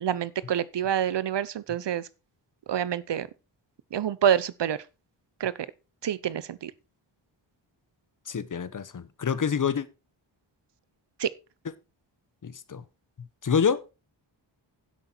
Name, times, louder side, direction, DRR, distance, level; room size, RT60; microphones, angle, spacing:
voice 1, 0.0-2.1 2.7-3.3 3.9-4.8 5.4-5.5 6.0-6.7 11.2-11.3, right 9 dB, 65° right, 0.9 m, -27 dB
voice 2, 8.3-9.9 12.4-12.8 13.4-13.8, left 7 dB, 40° left, 1.0 m, -27 dB
10.5 x 8.0 x 4.5 m
wide cardioid pair, 115°, 47 cm